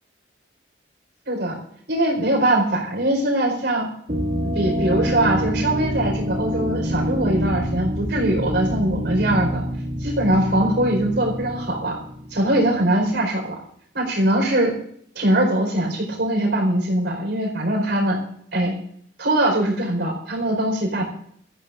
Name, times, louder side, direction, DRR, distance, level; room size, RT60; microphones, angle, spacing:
voice 1, 1.3-1.6 1.9-3.9 4.5-9.6 10.0-12.0 12.3-13.5 13.9-14.7 15.1-18.2 18.5-18.7 19.2-21.1, right 1 dB, 70° right, 0 dB, 4.5 m, -21 dB
sound 1, 4.1-12.8, equal, 45° right, 2.2 m, -26 dB
23.0 x 14.0 x 2.6 m, 0.65 s
head